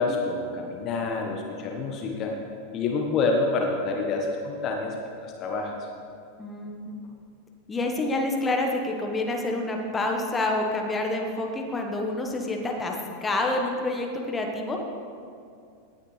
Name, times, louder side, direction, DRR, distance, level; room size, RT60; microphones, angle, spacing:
voice 1, 0.0-2.3 2.7-4.9 5.2-5.7, left 3 dB, 35° left, 1 dB, 1.2 m, -27 dB
voice 2, 6.4-6.9 7.7-14.8, left 2 dB, 15° left, 1 dB, 1.4 m, -28 dB
17.5 x 9.7 x 3.3 m, 2.4 s
figure-of-eight pair, 90°, 0 cm